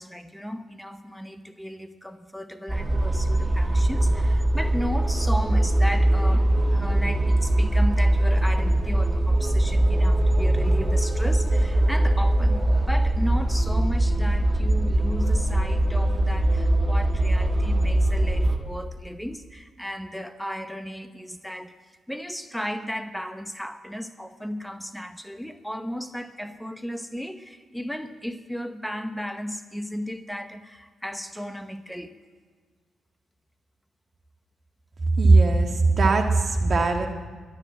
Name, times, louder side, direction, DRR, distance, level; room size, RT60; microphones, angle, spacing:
voice 1, 0.0-21.7 22.1-32.1, equal, 5° left, 10 dB, 0.9 m, -35 dB
sound 1, 2.7-18.6, right 1 dB, 25° right, 1.9 m, -21 dB
voice 2, 35.2-37.1, right 3 dB, 55° right, 4 dB, 1.6 m, -19 dB
11.5 x 9.9 x 7.6 m, 1.5 s
hypercardioid pair, 40°, 0 cm